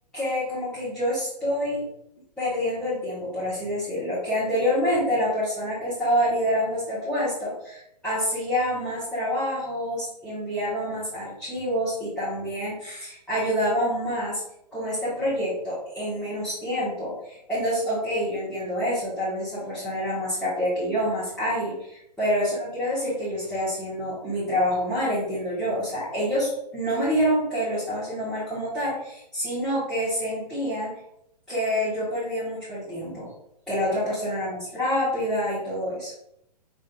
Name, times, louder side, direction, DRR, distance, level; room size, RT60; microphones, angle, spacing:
voice 1, 0.1-1.9 2.4-14.4 14.7-30.9 31.5-33.3 33.7-36.2, equal, 5° left, -13 dB, 1.6 m, -27 dB
5.3 x 3.2 x 2.6 m, 0.78 s
figure-of-eight pair, 120°, 21 cm